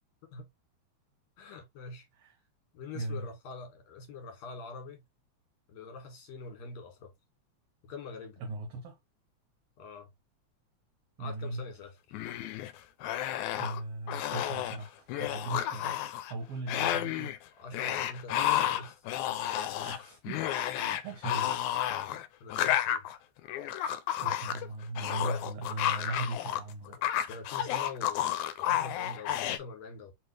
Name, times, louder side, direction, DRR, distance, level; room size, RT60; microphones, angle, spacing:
voice 1, 1.4-2.1 2.7-5.0 5.7-7.1 7.8-8.4 9.8-10.1 11.2-12.0 17.5-19.0 22.1-23.0 27.3-30.1, left 4 dB, 65° left, 2.6 m, -44 dB
voice 2, 2.9-3.3 8.4-9.0 11.2-11.6 13.5-16.0 16.3-17.3 19.8-20.4 20.8-21.5 24.2-27.0, right 2 dB, 65° right, 1.8 m, -38 dB
sound 1, 12.1-12.7 13.0-13.8 14.1-14.8 15.1-16.3 16.7-17.4 17.7-26.6 26.9-29.6, left 12 dB, 85° left, 2.0 m, -31 dB
4.4 x 3.4 x 3.0 m
omnidirectional pair, 3.4 m